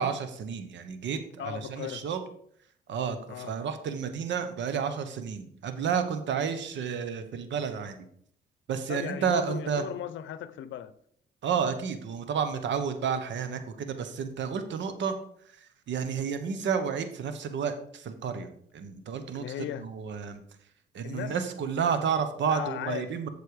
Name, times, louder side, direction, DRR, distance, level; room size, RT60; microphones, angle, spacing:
voice 1, 0.0-2.2 2.9-8.0 8.7-9.8 11.4-15.2 15.4-19.4 19.8-20.4 20.9-23.3, right 7 dB, 65° right, 1.2 m, -31 dB
voice 2, 1.4-2.1 3.3-3.5 8.9-11.0 19.3-19.9 21.0-21.4 22.5-23.1, left 11 dB, 75° left, 0.7 m, -37 dB
8.3 x 6.7 x 4.8 m
cardioid pair, 90°, 20 cm